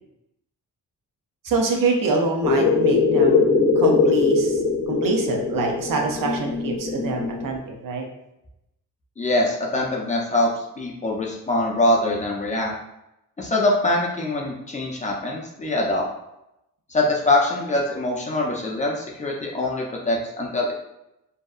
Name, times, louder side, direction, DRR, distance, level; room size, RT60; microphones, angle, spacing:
voice 1, 1.4-3.5 3.8-4.6 4.9-8.0, right 3 dB, 80° right, 1 dB, 0.6 m, -25 dB
sound 1, 2.4-7.6, left 4 dB, 75° left, 0.5 m, -21 dB
voice 2, 9.2-10.5 10.8-12.7 13.4-16.0 16.9-20.7, left 2 dB, 25° left, -2 dB, 0.4 m, -23 dB
2.7 x 2.2 x 2.3 m, 0.87 s
wide cardioid pair, 125°, 33 cm